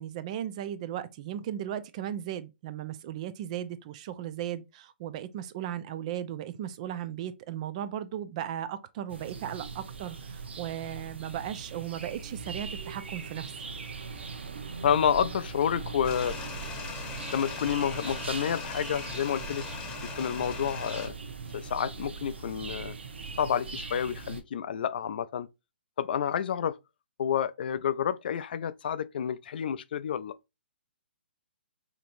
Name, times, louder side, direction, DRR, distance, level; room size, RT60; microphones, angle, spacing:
voice 1, 0.0-13.5, right 11 dB, 35° right, 0.5 m, -36 dB
sound 1, 9.1-24.4, right 5 dB, 75° right, 0.9 m, -40 dB
voice 2, 14.8-16.4 17.3-19.7 20.1-21.1 21.5-22.9 23.4-25.5 26.0-26.8 27.2-30.4, left 8 dB, 60° left, 0.4 m, -29 dB
sound 2, 16.0-21.1, left 4 dB, 15° left, 1.0 m, -39 dB
5.1 x 2.9 x 2.5 m
hypercardioid pair, 145°, 6 cm